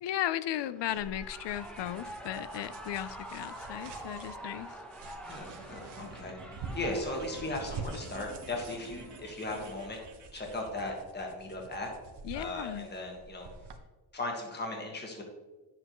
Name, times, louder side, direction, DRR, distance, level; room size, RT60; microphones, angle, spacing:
voice 1, 0.0-4.8 12.2-12.9, left 12 dB, 75° left, 15 dB, 0.6 m, -36 dB
Shout / Cheering, 0.6-9.6, right 1 dB, ahead, 0.8 m, -47 dB
sound 1, 0.9-13.8, right 4 dB, 65° right, 0.9 m, -47 dB
sound 2, 4.9-11.0, right 3 dB, 40° right, 1.6 m, -51 dB
voice 2, 5.2-10.0 10.3-11.9 12.3-13.5 14.1-15.2, left 2 dB, 25° left, 0 dB, 1.6 m, -37 dB
9.8 x 7.5 x 3.1 m, 1.2 s
cardioid pair, 130°, 43 cm